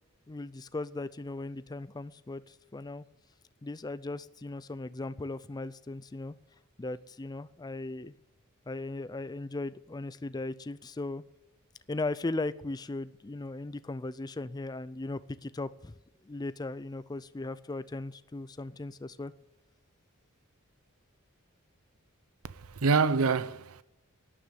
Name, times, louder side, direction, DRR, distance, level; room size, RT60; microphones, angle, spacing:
voice 1, 0.3-3.0 3.6-6.3 6.8-8.1 8.7-11.2 11.9-15.9 16.2-19.3, left 2 dB, 20° left, 0.4 m, -37 dB
voice 2, 22.4-23.8, right 4 dB, 80° right, 0.7 m, -26 dB
11.5 x 9.8 x 9.8 m
head